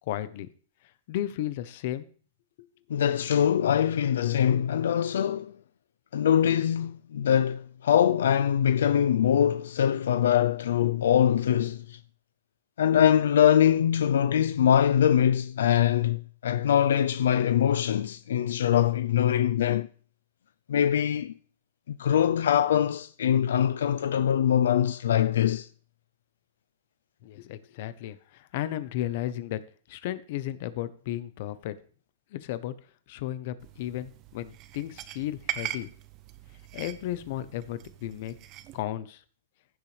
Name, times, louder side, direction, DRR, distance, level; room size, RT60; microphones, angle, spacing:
voice 1, 0.1-0.5 1.1-2.1 2.6-2.7 27.2-29.6 29.9-31.7 32.3-32.7 33.1-35.9 36.7-38.3 38.7-39.2, left 13 dB, 50° left, 0.8 m, -34 dB
voice 2, 2.9-5.5 6.1-12.0 12.8-19.9 20.7-21.4 21.9-25.7, left 9 dB, 90° left, 0.4 m, -23 dB
sound 1, 33.6-38.8, right 12 dB, 30° right, 0.8 m, -41 dB
15.5 x 7.0 x 3.3 m
supercardioid pair, 160°, 0 cm